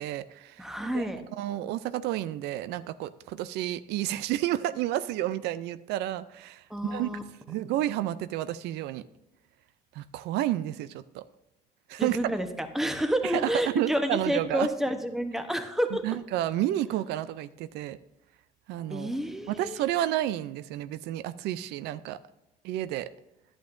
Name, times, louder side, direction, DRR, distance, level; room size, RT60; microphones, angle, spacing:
voice 1, 0.0-0.7 0.9-1.1 1.4-7.1 7.5-9.0 10.0-11.2 11.9-12.3 13.2-14.7 16.0-18.0 18.7-19.1 19.5-22.2 22.6-23.1, right 13 dB, 85° right, 14 dB, 0.4 m, -30 dB
voice 2, 0.6-1.2 6.7-7.2 12.0-16.0 18.9-19.8, equal, ahead, 7 dB, 0.9 m, -29 dB
11.5 x 8.6 x 2.6 m, 0.93 s
cardioid pair, 110°, 17 cm